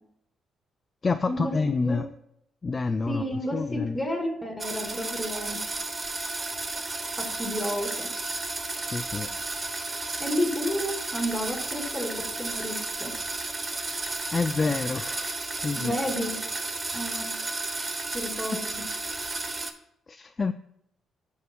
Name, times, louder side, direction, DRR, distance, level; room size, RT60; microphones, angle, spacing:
voice 1, 1.0-2.1 2.6-4.0 8.9-9.3 14.3-15.3 15.6-16.0 20.1-20.5, left 4 dB, 30° left, 8 dB, 0.4 m, -28 dB
voice 2, 3.1-5.6 7.2-8.1 10.2-13.1 15.7-16.3 16.9-17.3 18.1-18.8, equal, 10° left, 1 dB, 2.8 m, -31 dB
sound 1, 4.6-19.7, right 2 dB, 30° right, 0.9 m, -33 dB
13.5 x 6.4 x 2.3 m, 0.75 s
cardioid pair, 90°, 0 cm